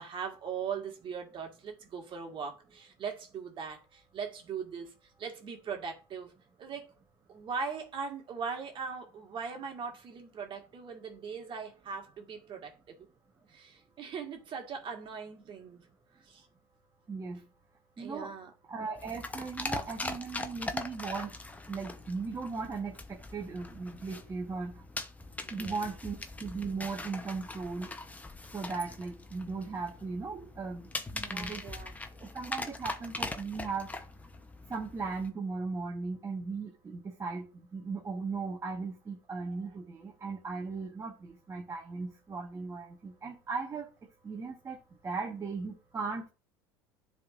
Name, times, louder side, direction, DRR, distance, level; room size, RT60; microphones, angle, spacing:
voice 1, 0.0-4.9 5.2-6.3 6.6-6.9 7.3-13.1 13.5-15.8 16.2-16.5 18.0-18.5 25.4-25.9 30.3-30.5 31.1-31.9, right 6 dB, 40° right, 1.7 m, -40 dB
voice 2, 17.1-17.4 18.0-18.3 18.7-21.3 21.7-24.8 25.5-27.9 28.5-30.9 31.3-31.6 32.2-33.9 34.7-43.9 44.2-44.8 45.0-46.3, right 4 dB, 25° right, 1.0 m, -37 dB
sound 1, 19.0-35.3, left 2 dB, 10° left, 0.8 m, -41 dB
10.5 x 3.6 x 2.5 m
hypercardioid pair, 85°, 13 cm